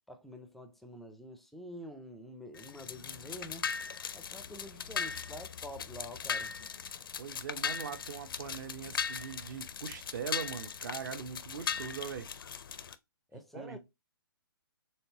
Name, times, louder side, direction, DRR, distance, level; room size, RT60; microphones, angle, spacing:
voice 1, 0.1-3.7 4.1-6.5 13.3-13.8, left 1 dB, ahead, 0.4 m, -47 dB
sound 1, 2.5-13.0, left 7 dB, 65° left, 0.4 m, -39 dB
voice 2, 7.2-12.3 13.5-13.8, right 7 dB, 50° right, 0.7 m, -41 dB
4.4 x 3.2 x 2.7 m
figure-of-eight pair, 130°, 13 cm